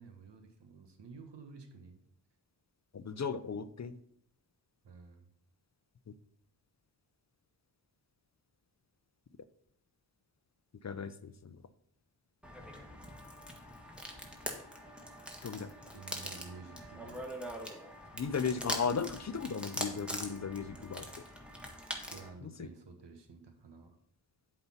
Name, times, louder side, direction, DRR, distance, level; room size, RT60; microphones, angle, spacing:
voice 1, 0.0-2.0 4.8-5.2 15.9-17.3 22.1-24.0, right 4 dB, 80° right, 6 dB, 1.3 m, -51 dB
voice 2, 2.9-4.0 10.8-11.6 15.4-15.7 18.1-21.1 22.4-22.7, left 6 dB, 40° left, 13 dB, 0.5 m, -36 dB
sound 1, 12.4-22.3, equal, ahead, 1.6 m, -43 dB
7.9 x 4.2 x 5.6 m, 0.66 s
cardioid pair, 50°, 42 cm